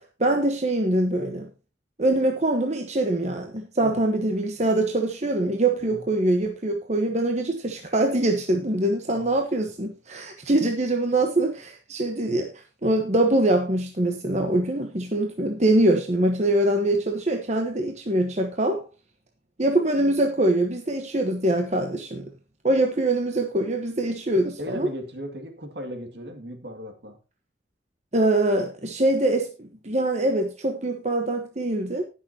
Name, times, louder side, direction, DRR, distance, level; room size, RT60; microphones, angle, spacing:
voice 1, 0.2-1.5 2.0-18.8 19.6-22.3 22.6-24.9 28.1-32.0, right 1 dB, 40° right, 1.2 m, -23 dB
voice 2, 24.6-27.2, equal, 65° right, 2.4 m, -37 dB
19.0 x 6.8 x 2.9 m
head